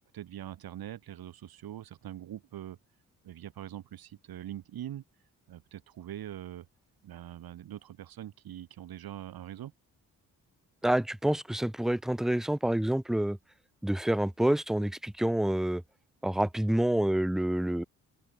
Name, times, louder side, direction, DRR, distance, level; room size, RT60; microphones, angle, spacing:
voice 1, 0.1-2.8 3.2-5.0 5.5-6.7 7.0-9.7, right 12 dB, 70° right, 1.3 m, -43 dB
voice 2, 10.8-13.4 13.8-15.8 16.2-17.8, right 1 dB, ahead, 0.3 m, -27 dB
open air
supercardioid pair, 45°, 38 cm